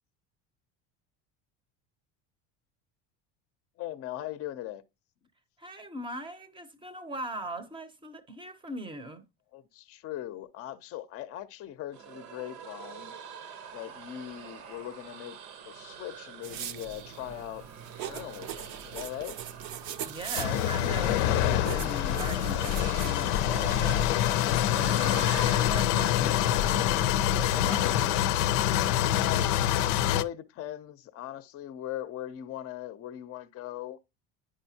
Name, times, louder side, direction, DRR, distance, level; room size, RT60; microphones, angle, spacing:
voice 1, 3.8-4.8 9.5-13.1 13.7-15.4 15.6-17.6 18.0-19.4 29.2-29.5 29.9-34.0, left 13 dB, 40° left, 0.6 m, -39 dB
voice 2, 5.6-9.2 20.0-27.1 27.4-28.2, right 2 dB, 15° right, 0.7 m, -41 dB
sound 1, 11.9-25.7 26.5-27.1 27.5-27.8 28.2-28.9, right 7 dB, 85° right, 1.1 m, -46 dB
sound 2, 16.4-23.1, right 10 dB, 55° right, 0.6 m, -40 dB
sound 3, 20.3-30.2, left 12 dB, 85° left, 0.6 m, -26 dB
9.9 x 5.0 x 2.7 m
cardioid pair, 145°, 36 cm